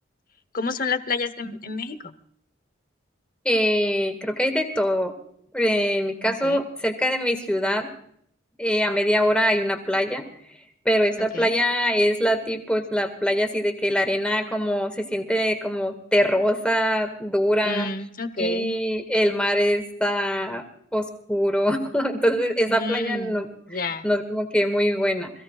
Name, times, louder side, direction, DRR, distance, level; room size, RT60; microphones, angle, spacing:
voice 1, 0.5-2.1 6.3-6.6 11.3-11.5 17.6-18.7 22.7-23.4 23.7-24.1, left 3 dB, 45° left, 12 dB, 1.0 m, -29 dB
voice 2, 3.5-5.1 5.5-7.9 8.6-10.2 10.9-17.9 18.4-20.7 20.9-25.3, equal, 5° left, 6 dB, 1.8 m, -23 dB
26.5 x 16.0 x 2.4 m, 0.69 s
head